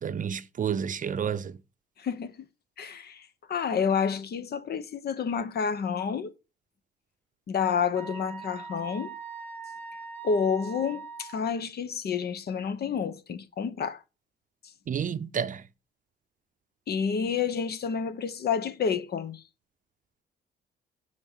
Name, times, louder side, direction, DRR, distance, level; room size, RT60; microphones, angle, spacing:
voice 1, 0.0-1.5 14.9-15.6, right 7 dB, 40° right, 0.6 m, -30 dB
voice 2, 2.0-2.4 2.8-6.3 7.5-9.1 10.2-14.0 16.9-19.4, left 6 dB, 55° left, 0.9 m, -29 dB
Wind instrument woodwind instrument, 8.0-11.4, right 5 dB, 10° left, 1.5 m, -41 dB
6.6 x 5.3 x 6.5 m
cardioid pair, 90°, 20 cm